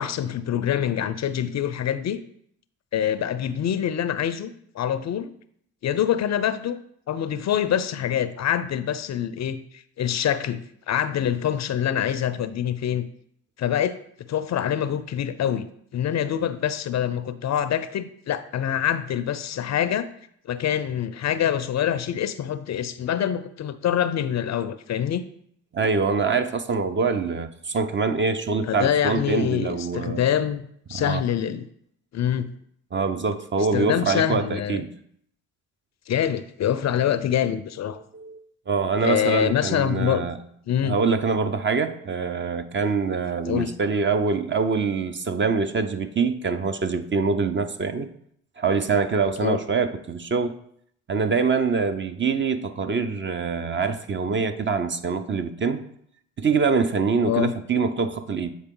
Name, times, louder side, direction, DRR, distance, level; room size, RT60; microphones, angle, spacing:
voice 1, 0.0-2.2 2.9-5.3 5.8-6.8 7.1-10.6 10.9-13.0 13.6-14.0 14.3-15.6 15.9-20.1 20.5-25.3 28.6-30.6 30.9-31.6 32.1-32.5 33.7-34.9 36.1-38.0 39.0-40.3 40.7-40.9 43.5-43.7 49.4-49.6 57.3-57.5, left 9 dB, 45° left, 13 dB, 0.5 m, -25 dB
voice 2, 25.7-30.2 30.9-31.2 32.9-34.9 37.9-40.4 40.8-48.1 48.6-50.5 51.1-55.8 56.4-58.5, right 5 dB, 30° right, 9 dB, 0.7 m, -24 dB
7.9 x 4.1 x 3.7 m, 0.67 s
supercardioid pair, 60°, 37 cm